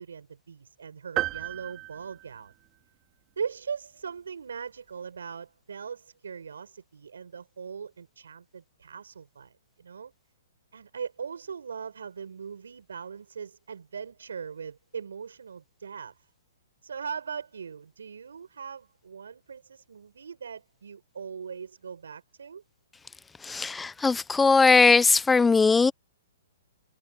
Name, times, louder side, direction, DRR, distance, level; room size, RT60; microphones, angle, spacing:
voice 1, 0.0-2.5 3.4-9.5 9.8-10.1 10.7-16.2 16.8-22.6, right 6 dB, 85° right, 5.8 m, -40 dB
sound 1, 1.2-2.9, right 17 dB, 25° right, 2.2 m, -34 dB
voice 2, 23.4-25.9, left 4 dB, 10° left, 0.7 m, -20 dB
hypercardioid pair, 150°, 0 cm